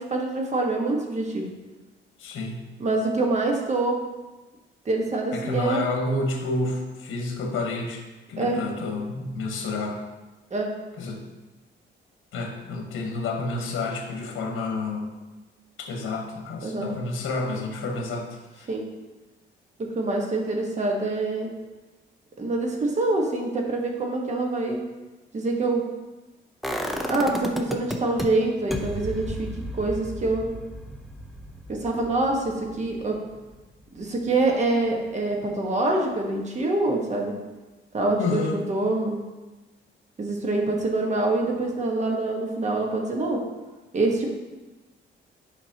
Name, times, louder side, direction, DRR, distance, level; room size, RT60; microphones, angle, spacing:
voice 1, 0.0-1.5 2.8-4.0 4.8-5.8 8.4-8.6 10.5-10.7 16.6-16.9 18.7-18.9 19.8-21.5 22.4-24.8 25.3-25.9 27.1-30.6 31.7-33.2 33.9-37.4 37.9-39.2 40.2-43.4 43.9-44.3, right 2 dB, 35° right, 0 dB, 1.4 m, -25 dB
voice 2, 2.2-2.6 5.3-8.0 8.3-10.0 11.0-11.2 12.3-15.1 15.8-18.7 38.2-38.6, left 3 dB, 80° left, 2 dB, 1.3 m, -29 dB
sound 1, 26.6-28.3 28.7-34.5 34.9-35.0, equal, ahead, 0.6 m, -34 dB
10.5 x 5.1 x 2.9 m, 1.2 s
cardioid pair, 130°, 21 cm